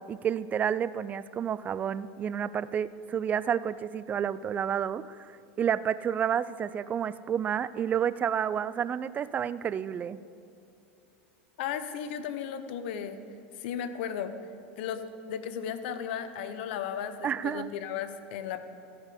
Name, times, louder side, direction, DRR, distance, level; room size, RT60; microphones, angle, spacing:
voice 1, 0.0-5.2 5.6-10.2 17.2-17.7, right 8 dB, 25° right, 16 dB, 0.4 m, -30 dB
voice 2, 11.6-13.2 13.6-14.3 14.8-18.6, left 8 dB, 70° left, 10 dB, 0.9 m, -35 dB
14.5 x 5.2 x 8.4 m, 2.7 s
hypercardioid pair, 110°, 6 cm